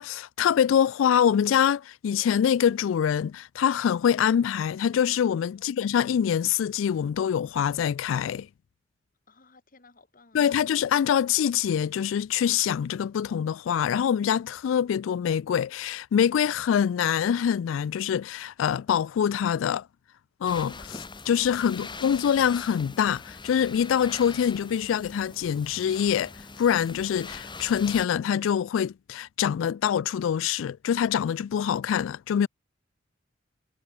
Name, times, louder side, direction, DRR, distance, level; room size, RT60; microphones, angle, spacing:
voice 1, 0.0-8.5 10.3-19.8 20.4-32.5, left 8 dB, 85° left, 0.3 m, -25 dB
voice 2, 9.3-10.6 21.4-21.9, left 2 dB, 45° left, 3.8 m, -57 dB
sound 1, 20.5-28.1, left 3 dB, 25° left, 2.6 m, -42 dB
head